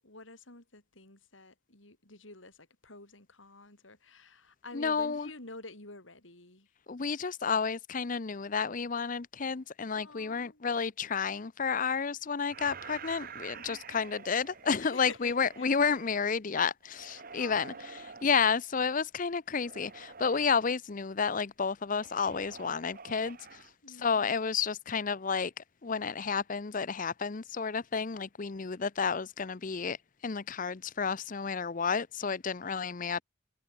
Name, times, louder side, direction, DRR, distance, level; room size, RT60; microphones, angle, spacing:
voice 1, 0.0-6.7 9.9-10.6 13.6-14.0 14.8-15.7 17.2-18.1 23.8-24.4, left 2 dB, 75° left, 5.7 m, -50 dB
voice 2, 4.7-5.3 6.9-17.7 18.0-23.6 24.0-30.0 30.2-33.2, left 5 dB, 40° left, 0.6 m, -31 dB
sound 1, 12.5-16.3 16.8-18.3 19.5-20.6 21.9-23.7, right 5 dB, 45° right, 1.6 m, -48 dB
head